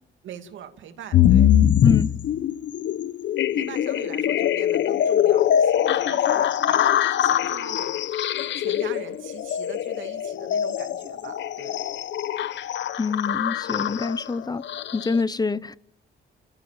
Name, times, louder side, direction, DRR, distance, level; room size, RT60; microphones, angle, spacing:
voice 1, 0.2-1.5 3.5-8.0 8.3-11.8, right 9 dB, 75° right, 2.5 m, -42 dB
sound 1, 1.1-15.2, left 10 dB, 65° left, 0.9 m, -23 dB
voice 2, 13.0-14.6 14.9-15.8, left 4 dB, 20° left, 0.7 m, -25 dB
29.5 x 15.0 x 7.5 m
cardioid pair, 90°, 20 cm